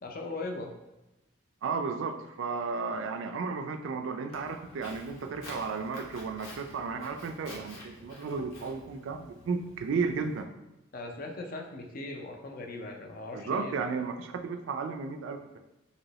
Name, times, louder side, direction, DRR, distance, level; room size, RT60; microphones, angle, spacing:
voice 1, 0.0-0.7 10.9-14.0, left 2 dB, 45° left, 2 dB, 0.4 m, -39 dB
voice 2, 1.6-10.5 13.3-15.6, right 4 dB, 65° right, 6 dB, 0.3 m, -34 dB
Walk footsteps, 4.3-10.4, left 1 dB, 85° left, 0.9 m, -49 dB
3.0 x 2.9 x 2.7 m, 0.95 s
head